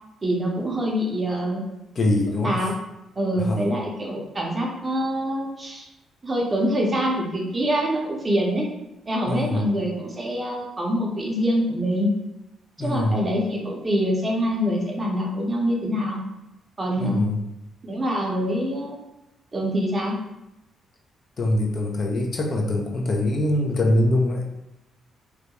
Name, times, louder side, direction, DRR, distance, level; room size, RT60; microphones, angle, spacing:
voice 1, 0.2-1.6 2.4-2.7 3.2-5.9 6.2-8.7 9.1-12.1 12.8-16.2 16.8-17.2 17.8-19.0 19.5-20.2, equal, 25° right, -1 dB, 0.6 m, -25 dB
voice 2, 2.0-2.6 3.4-3.6 9.3-9.7 12.8-13.2 17.0-17.4 21.4-24.5, left 1 dB, 40° left, 1 dB, 0.4 m, -23 dB
2.3 x 2.1 x 2.8 m, 0.93 s
cardioid pair, 90°, 0 cm